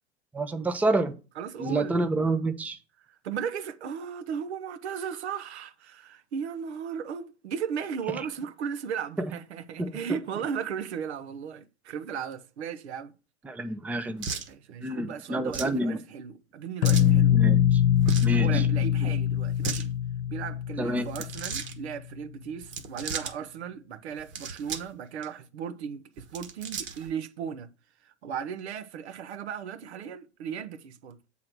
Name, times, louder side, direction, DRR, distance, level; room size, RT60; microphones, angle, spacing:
voice 1, 0.3-1.1 1.6-2.8 9.2-9.3 9.8-9.9 13.5-14.3 14.8-16.0 17.3-17.8 18.2-18.7 20.8-21.1, right 2 dB, 5° right, 0.6 m, -28 dB
voice 2, 1.4-2.0 3.1-13.1 14.5-17.4 18.4-20.0 20.3-27.7 28.0-31.2, right 7 dB, 75° right, 0.9 m, -36 dB
sound 1, 14.2-14.5 15.5-15.8 16.8-17.1 18.0-18.4 19.4-19.9 21.0-21.7 22.6-23.3 24.2-24.9 25.2-25.3 26.2-27.1, right 5 dB, 35° right, 1.3 m, -35 dB
sound 2, 16.8-21.7, left 10 dB, 65° left, 0.9 m, -23 dB
7.5 x 3.8 x 5.9 m
hypercardioid pair, 110°, 34 cm